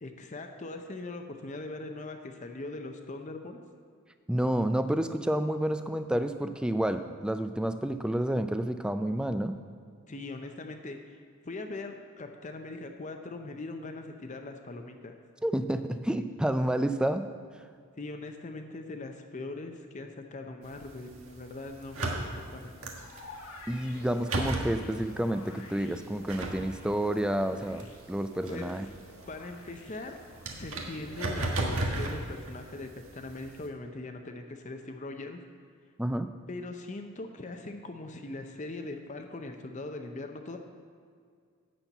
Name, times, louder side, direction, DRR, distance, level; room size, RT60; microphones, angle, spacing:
voice 1, 0.0-3.6 10.1-15.1 18.0-23.0 28.5-28.7 29.3-30.2 30.6-35.4 36.5-40.6, left 2 dB, 35° left, 5 dB, 0.6 m, -41 dB
voice 2, 4.3-9.6 15.4-17.2 23.7-28.9 36.0-36.3, right 1 dB, 5° right, 9 dB, 0.3 m, -29 dB
sound 1, 20.6-33.7, right 2 dB, 85° right, 1.4 m, -37 dB
sound 2, 23.0-31.3, left 2 dB, 80° left, 1.5 m, -51 dB
11.5 x 4.4 x 8.0 m, 2.1 s
head